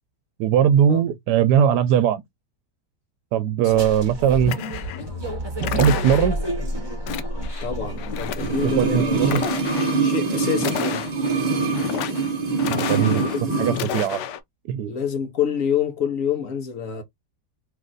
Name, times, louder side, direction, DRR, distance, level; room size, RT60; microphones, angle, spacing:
voice 1, 0.4-2.2 3.3-4.6 5.6-6.4 8.4-9.4 12.7-13.2 13.6-14.2 14.7-14.9, right 9 dB, 80° right, 1.1 m, -20 dB
sound 1, 3.7-9.3, right 1 dB, 20° right, 0.8 m, -30 dB
sound 2, 4.5-5.1 5.6-6.5 7.1-7.7 8.0-8.7 9.2-10.0 10.6-11.4 11.7-12.3 12.6-13.4 13.7-14.4, left 9 dB, 85° left, 1.2 m, -30 dB
voice 2, 7.6-9.5 9.8-11.1 13.0-13.9 14.9-17.0, left 7 dB, 60° left, 1.0 m, -28 dB
sound 3, 8.3-13.8 14.1-14.2, right 4 dB, 45° right, 0.5 m, -24 dB
3.2 x 2.4 x 3.8 m
omnidirectional pair, 1.8 m